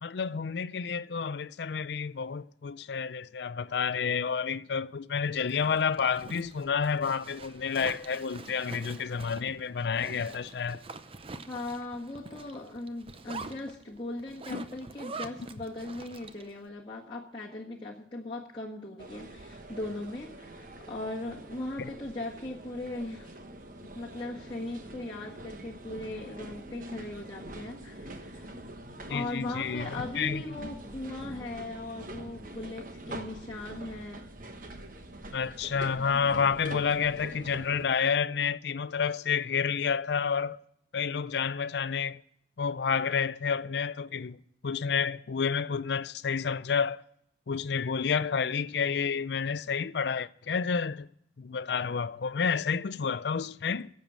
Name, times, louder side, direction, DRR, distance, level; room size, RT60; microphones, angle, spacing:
voice 1, 0.0-10.8 14.5-14.6 21.8-21.9 29.1-29.9 30.2-30.4 35.3-40.6 40.9-42.2 42.6-44.4 44.6-47.0 47.5-51.1 51.4-53.9, left 6 dB, 65° left, 0.4 m, -30 dB
Zipper (clothing), 5.4-16.6, right 3 dB, 30° right, 0.7 m, -45 dB
voice 2, 11.5-23.4 23.8-28.5 29.1-34.2, left 2 dB, 25° left, 1.6 m, -39 dB
sound 1, 19.0-37.9, right 1 dB, 45° right, 1.1 m, -45 dB
12.0 x 7.7 x 8.6 m
head